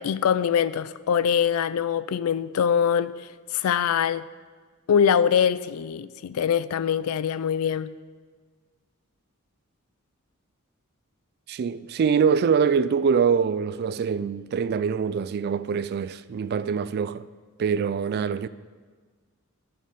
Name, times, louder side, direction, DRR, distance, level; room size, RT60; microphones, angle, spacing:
voice 1, 0.0-4.2 4.9-7.9, left 8 dB, 90° left, 0.4 m, -23 dB
voice 2, 11.5-17.3 17.6-18.5, right 6 dB, 50° right, 0.3 m, -24 dB
9.5 x 6.7 x 5.2 m
head